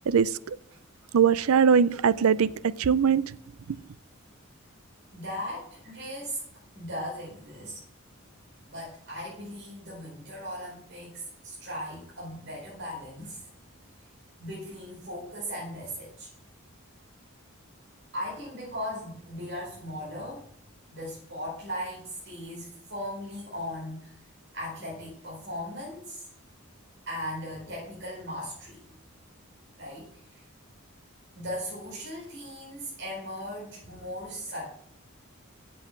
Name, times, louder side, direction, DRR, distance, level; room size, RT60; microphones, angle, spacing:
voice 1, 0.1-0.6 1.1-3.2 3.7-3.8, right 6 dB, 90° right, 0.5 m, -22 dB
voice 2, 5.1-6.4 6.7-7.8 8.7-13.5 14.4-16.3 18.1-20.5 20.9-24.2 24.5-26.2 27.1-28.9 29.8-30.1 30.3-30.4 31.3-34.7, equal, 55° right, 4.6 m, -38 dB
9.0 x 7.8 x 7.3 m
head